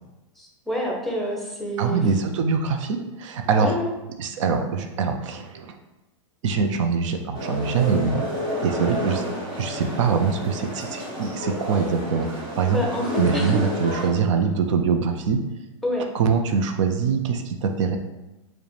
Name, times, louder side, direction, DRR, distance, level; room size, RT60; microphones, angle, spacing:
voice 1, 0.4-2.0 3.4-3.9 8.7-8.9 12.7-13.6 15.8-16.1, equal, ahead, -1 dB, 0.8 m, -28 dB
voice 2, 1.8-3.8 4.2-5.8 6.4-8.2 8.6-9.2 9.6-12.8 13.2-15.4 16.1-18.0, right 5 dB, 65° right, 6 dB, 0.5 m, -23 dB
sound 1, 7.3-14.1, equal, 30° right, 1.4 m, -30 dB
4.7 x 2.2 x 3.2 m, 1.0 s
hypercardioid pair, 125°, 17 cm